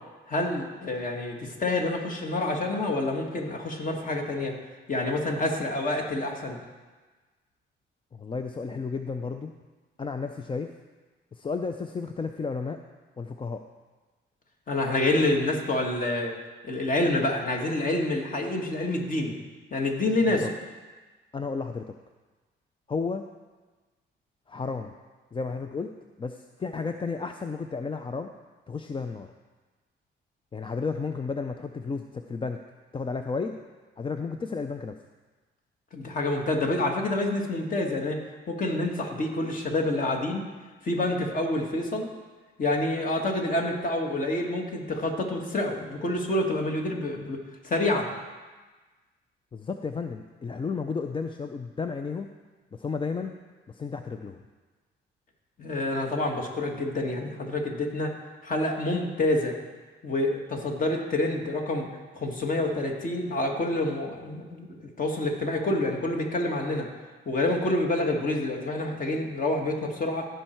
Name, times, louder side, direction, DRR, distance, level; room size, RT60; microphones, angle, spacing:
voice 1, 0.3-4.5 4.9-6.6 14.7-16.3 16.6-19.3 19.7-20.5 35.9-38.2 38.5-40.4 40.8-42.1 42.6-48.1 55.6-58.1 58.4-59.5 60.0-61.9 62.1-66.9 67.3-70.3, left 2 dB, 45° left, 2 dB, 1.8 m, -27 dB
voice 2, 8.1-9.5 10.0-10.7 11.3-12.8 13.2-13.6 20.2-20.5 21.3-21.9 22.9-23.3 24.5-24.9 25.3-25.9 26.2-28.3 28.7-29.3 30.5-32.6 32.9-33.6 34.0-35.0 49.5-52.3 52.7-53.4 53.7-54.4, left 4 dB, 25° left, 7 dB, 0.5 m, -32 dB
15.5 x 5.6 x 4.5 m, 1.3 s
cardioid pair, 90°, 20 cm